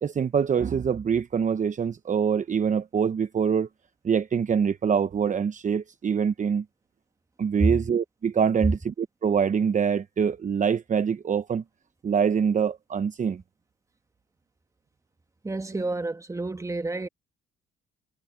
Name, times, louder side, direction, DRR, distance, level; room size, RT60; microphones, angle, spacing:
voice 1, 0.0-3.7 4.0-6.6 7.4-11.6 12.0-13.4, right 7 dB, 40° right, 0.8 m, -25 dB
voice 2, 15.4-17.1, right 2 dB, 15° right, 1.4 m, -29 dB
cardioid pair, 90°, 20 cm